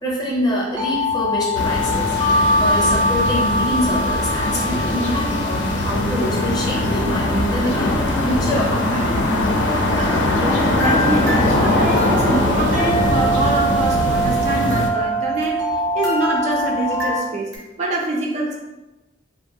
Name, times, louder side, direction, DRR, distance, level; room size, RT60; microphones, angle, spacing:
voice 1, 0.0-9.1, equal, 20° left, -4 dB, 0.6 m, -25 dB
sound 1, 0.7-17.2, equal, 70° right, 0.7 m, -24 dB
sound 2, 1.5-14.9, left 1 dB, 70° left, 0.4 m, -21 dB
voice 2, 10.0-15.7 15.9-18.6, right 2 dB, 40° right, -1 dB, 0.3 m, -25 dB
sound 3, 10.8-12.7 14.5-17.6, left 2 dB, 90° right, 1.2 m, -30 dB
2.8 x 2.2 x 2.6 m, 1.1 s
head